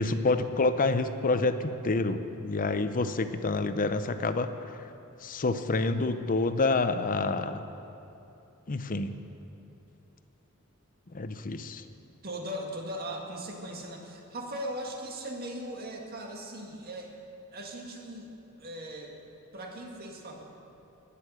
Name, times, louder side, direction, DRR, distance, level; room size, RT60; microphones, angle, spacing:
voice 1, 0.0-4.5 5.2-7.6 8.7-9.1 11.1-11.8, left 3 dB, 40° left, 10 dB, 0.6 m, -28 dB
voice 2, 12.2-17.1 17.5-18.3 18.6-19.1 19.5-20.4, right 1 dB, 45° right, 1 dB, 1.8 m, -39 dB
12.5 x 8.6 x 8.6 m, 2.9 s
head